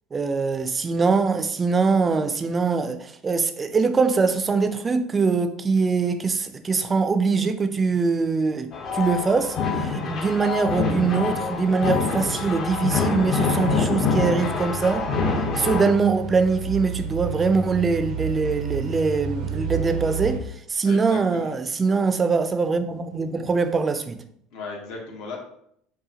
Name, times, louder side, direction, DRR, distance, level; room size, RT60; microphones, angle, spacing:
voice 1, 0.1-15.1 15.6-20.4 20.7-24.2, right 4 dB, 25° right, 0.4 m, -23 dB
sound 1, 8.7-15.9, left 4 dB, 50° left, 0.8 m, -25 dB
sound 2, 11.0-20.4, right 7 dB, 85° right, 0.7 m, -33 dB
voice 2, 20.8-21.6 24.5-25.4, left 3 dB, 75° left, 1.1 m, -36 dB
5.5 x 2.3 x 2.8 m
supercardioid pair, 105°, 0 cm